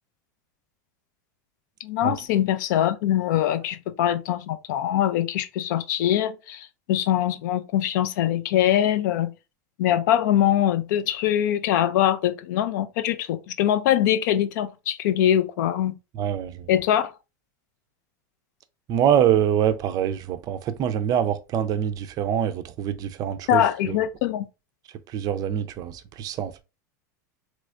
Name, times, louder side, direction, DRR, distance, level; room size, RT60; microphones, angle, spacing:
voice 1, 1.8-9.3 9.8-15.9 16.7-17.1 23.5-24.5, left 11 dB, 70° left, 0.4 m, -23 dB
voice 2, 16.1-16.7 18.9-24.0 25.1-26.6, right 9 dB, 40° right, 0.4 m, -25 dB
3.2 x 3.0 x 2.4 m
supercardioid pair, 115°, 10 cm